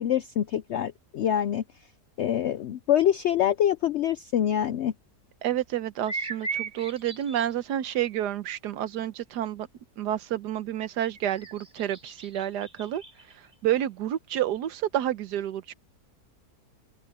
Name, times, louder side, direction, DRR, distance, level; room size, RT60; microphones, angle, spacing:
voice 1, 0.0-1.6 2.2-4.9, left 10 dB, 80° left, 0.6 m, -25 dB
voice 2, 5.4-9.7 10.0-13.0 13.6-15.7, right 11 dB, 85° right, 1.4 m, -29 dB
sound 1, 6.1-7.5 11.0-13.5, right 4 dB, 30° right, 4.5 m, -37 dB
open air
omnidirectional pair, 1.7 m